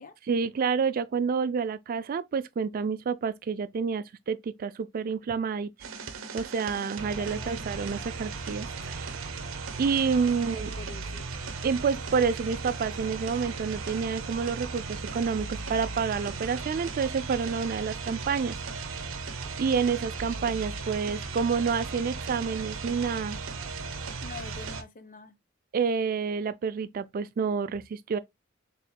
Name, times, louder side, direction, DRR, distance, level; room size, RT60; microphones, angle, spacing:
voice 1, 0.3-5.7 6.3-9.3 9.8-10.7 11.6-18.6 18.9-19.2 19.6-23.4 25.7-28.2, right 5 dB, 45° right, 0.3 m, -29 dB
sound 1, 5.8-24.8, right 4 dB, 80° right, 0.6 m, -36 dB
voice 2, 7.2-7.5 10.3-11.2 24.2-25.3, left 3 dB, 40° left, 0.6 m, -45 dB
4.2 x 3.3 x 2.2 m
head